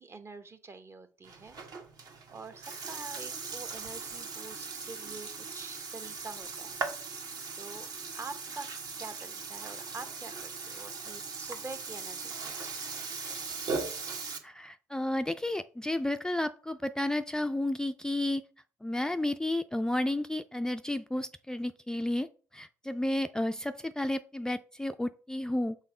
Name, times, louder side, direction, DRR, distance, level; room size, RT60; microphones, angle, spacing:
voice 1, 0.0-1.6 2.3-5.3 5.5-6.9 7.6-7.9 8.1-8.7 9.0-12.8, right 3 dB, 30° right, 10 dB, 0.8 m, -46 dB
Burping eructation, 1.2-14.4, right 4 dB, 50° right, 1.2 m, -39 dB
voice 2, 14.4-18.4 18.8-22.3 22.5-25.8, left 1 dB, 10° left, 9 dB, 0.3 m, -32 dB
5.7 x 3.6 x 4.8 m, 0.39 s
hypercardioid pair, 55°, 8 cm